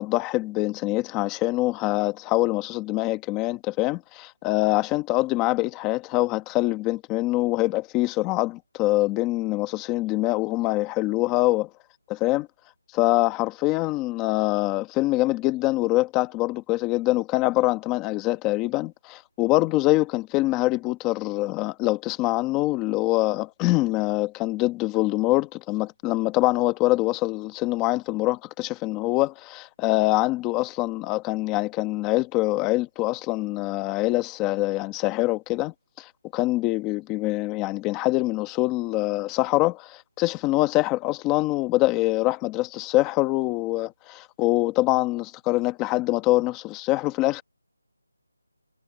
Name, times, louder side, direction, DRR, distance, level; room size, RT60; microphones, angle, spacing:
voice 1, 0.0-11.7 12.1-12.5 12.9-47.4, left 19 dB, 10° left, 1.2 m, -24 dB
figure-of-eight pair, 175°, 0 cm